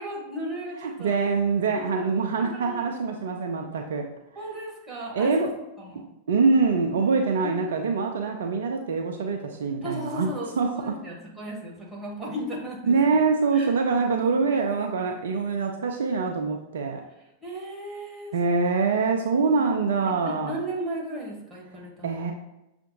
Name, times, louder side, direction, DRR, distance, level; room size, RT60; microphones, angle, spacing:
voice 1, 0.0-1.2 1.7-2.9 4.3-5.5 5.8-6.1 7.4-7.8 9.8-13.2 13.5-14.1 17.4-18.7 19.4-19.6 20.2-22.2, equal, 10° right, -3 dB, 1.3 m, -36 dB
voice 2, 0.8-4.0 5.1-5.5 6.3-10.3 10.6-10.7 12.9-17.0 18.3-20.6 22.0-22.3, right 4 dB, 60° right, 3 dB, 0.4 m, -24 dB
6.4 x 2.5 x 2.6 m, 0.92 s
figure-of-eight pair, 90°, 0 cm